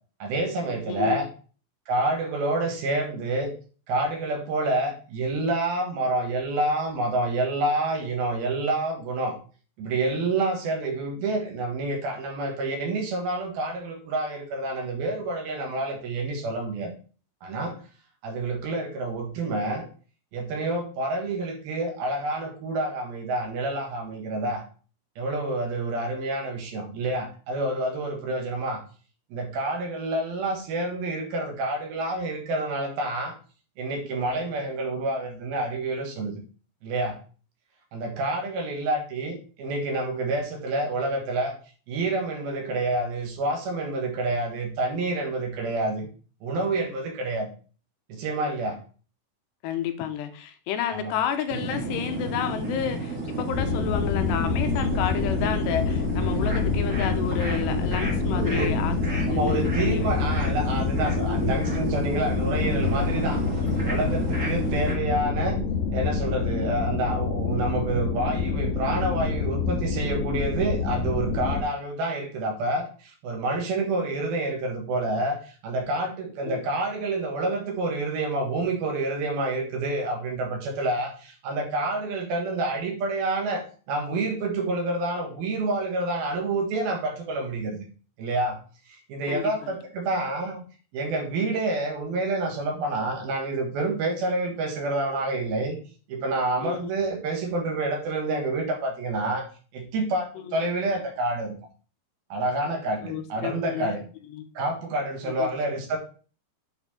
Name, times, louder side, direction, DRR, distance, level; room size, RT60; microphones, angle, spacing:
voice 1, 0.2-1.3 1.9-3.5 3.9-9.4 9.8-16.9 17.4-17.8 18.2-19.9 20.3-24.7 25.2-28.8 29.3-33.3 33.8-36.4 36.8-37.2 37.9-41.6 41.9-46.1 46.4-47.5 48.1-48.8 50.9-51.1 58.3-58.7 59.3-63.4 63.8-65.6 65.9-87.8 88.2-88.6 89.1-90.6 90.9-95.8 96.1-99.5 99.7-101.5 102.3-104.0 104.6-106.0, right 2 dB, 65° right, 2 dB, 3.0 m, -28 dB
voice 2, 0.9-1.2 49.6-60.1 61.2-61.6 64.4-64.9 76.4-76.6 89.3-89.8 96.6-96.9 100.4-100.6 103.0-103.9 104.3-104.6 105.2-105.5, left 10 dB, 85° left, 7 dB, 2.8 m, -31 dB
sound 1, 51.5-64.9, right 2 dB, 30° right, 1.4 m, -31 dB
sound 2, 53.5-71.6, left 5 dB, 60° left, 2.7 m, -27 dB
8.8 x 4.4 x 4.2 m, 0.38 s
omnidirectional pair, 4.9 m